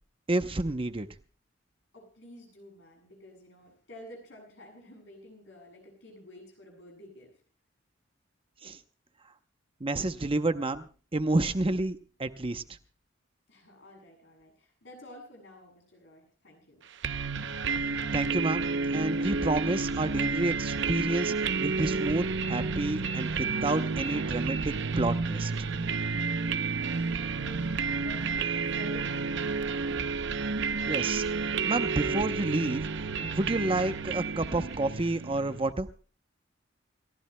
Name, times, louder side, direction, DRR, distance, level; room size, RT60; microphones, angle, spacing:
voice 1, 0.3-1.1 8.6-8.8 9.8-10.9 11.1-12.6 18.1-18.7 18.9-25.5 30.9-31.2 31.6-32.8 33.2-35.9, right 2 dB, 30° right, 9 dB, 0.7 m, -29 dB
voice 2, 1.9-7.3 13.5-16.8 26.8-29.7, left 1 dB, 65° left, 1 dB, 7.8 m, -51 dB
sound 1, 17.0-35.7, right 4 dB, 65° right, 0.7 m, -30 dB
29.0 x 15.5 x 2.2 m, 0.38 s
head